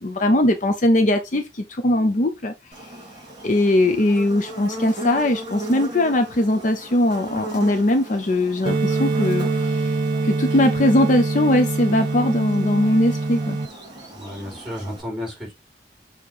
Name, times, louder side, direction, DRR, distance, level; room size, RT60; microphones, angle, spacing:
voice 1, 0.0-2.5 3.4-9.9 10.2-13.6, left 1 dB, 45° left, 0.6 m, -20 dB
Buzz, 2.7-15.0, right 1 dB, 25° right, 3.8 m, -37 dB
sound 1, 8.7-13.7, right 3 dB, 55° right, 0.8 m, -24 dB
voice 2, 14.1-15.5, left 1 dB, 5° right, 4.2 m, -32 dB
6.9 x 3.0 x 4.8 m
head